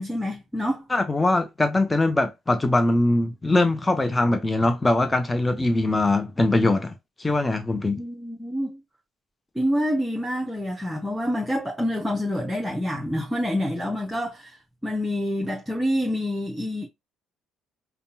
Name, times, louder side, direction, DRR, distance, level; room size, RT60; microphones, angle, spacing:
voice 1, 0.0-0.9 8.0-8.8 9.5-14.6 14.8-16.9, equal, 5° right, 0.9 m, -27 dB
voice 2, 0.9-6.9 7.2-8.0, left 2 dB, 15° left, 0.6 m, -22 dB
5.3 x 2.3 x 2.6 m
figure-of-eight pair, 50°, 0 cm